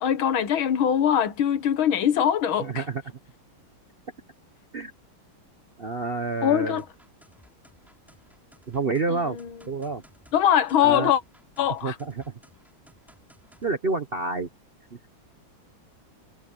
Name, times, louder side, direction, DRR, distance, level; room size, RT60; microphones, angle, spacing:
voice 1, 0.0-2.8 6.4-6.9 9.1-9.5 10.3-11.2 11.6-12.0, left 9 dB, 80° left, 2.0 m, -22 dB
voice 2, 2.6-3.0 4.7-4.9 5.8-6.8 8.7-9.4 9.7-10.0 10.8-11.1 11.8-12.2 13.6-14.5, right 3 dB, 45° right, 0.8 m, -28 dB
sound 1, 6.8-13.7, equal, ahead, 4.7 m, -57 dB
omnidirectional pair, 2.2 m